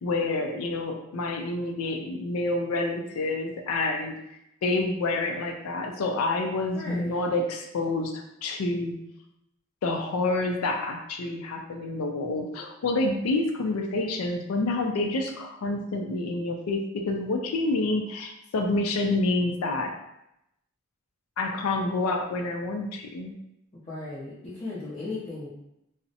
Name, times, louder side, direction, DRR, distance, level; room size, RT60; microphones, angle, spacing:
voice 1, 0.0-4.1 4.6-8.9 9.8-19.9 21.4-23.3, left 2 dB, 85° left, 4 dB, 0.4 m, -28 dB
voice 2, 6.7-7.2 23.7-25.5, left 3 dB, 30° left, -9 dB, 0.5 m, -36 dB
2.5 x 2.0 x 2.7 m, 0.82 s
head